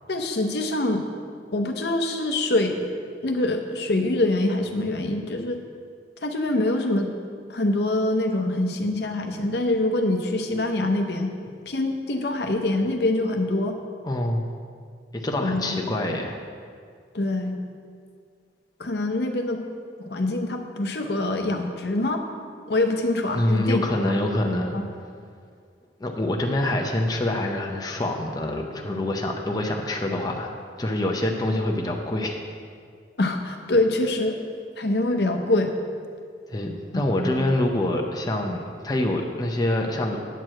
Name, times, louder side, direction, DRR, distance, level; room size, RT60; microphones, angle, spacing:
voice 1, 0.1-1.0 1.5-2.9 3.2-5.6 6.2-7.1 7.5-11.3 11.7-13.8 15.4-16.2 17.1-17.5 18.8-19.6 20.0-22.2 22.7-24.1 24.7-24.8 33.2-34.4 34.8-35.7 37.2-37.4, left 2 dB, 65° left, 4 dB, 0.8 m, -25 dB
voice 2, 14.0-14.5 15.1-16.4 23.3-24.8 26.0-30.5 30.8-32.4 36.5-40.2, left 1 dB, 20° left, 1 dB, 0.6 m, -25 dB
9.1 x 4.6 x 7.5 m, 2.1 s
head